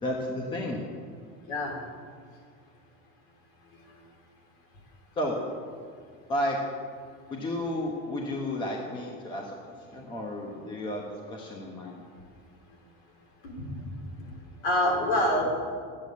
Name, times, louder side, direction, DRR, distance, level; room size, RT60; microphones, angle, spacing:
voice 1, 0.0-0.8 5.2-5.4 6.3-6.6 7.3-12.0, left 1 dB, 15° left, 0 dB, 1.1 m, -32 dB
voice 2, 13.6-13.9 14.6-15.4, left 1 dB, 55° left, 0 dB, 3.7 m, -26 dB
11.5 x 8.8 x 8.5 m, 2.2 s
supercardioid pair, 175°, 32 cm